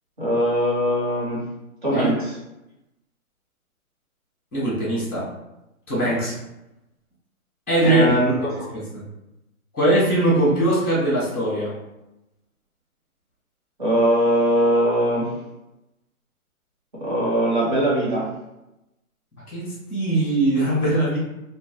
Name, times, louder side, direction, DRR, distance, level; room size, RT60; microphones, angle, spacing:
voice 1, 0.2-1.5 1.8-2.3 7.8-8.3 8.6-8.7 13.8-15.3 17.0-18.3, equal, 35° right, -6 dB, 0.9 m, -21 dB
voice 2, 4.5-5.3 5.9-6.3 7.7-8.0 8.4-8.6 8.9-9.0 9.7-11.7 19.5-21.2, right 1 dB, 10° left, -11 dB, 0.6 m, -21 dB
2.2 x 2.2 x 2.7 m, 0.92 s
hypercardioid pair, 165°, 43 cm